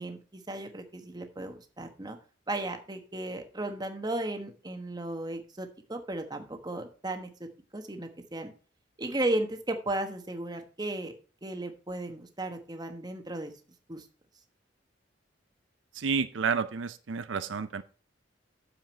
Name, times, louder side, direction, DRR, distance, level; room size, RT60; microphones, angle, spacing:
voice 1, 0.0-2.2 2.5-7.3 7.7-8.5 9.0-11.1 11.4-13.5 13.9-14.1, right 2 dB, 20° right, 5 dB, 1.2 m, -35 dB
voice 2, 16.0-17.8, right 5 dB, 80° right, 12 dB, 0.6 m, -30 dB
9.2 x 7.1 x 4.5 m, 0.37 s
head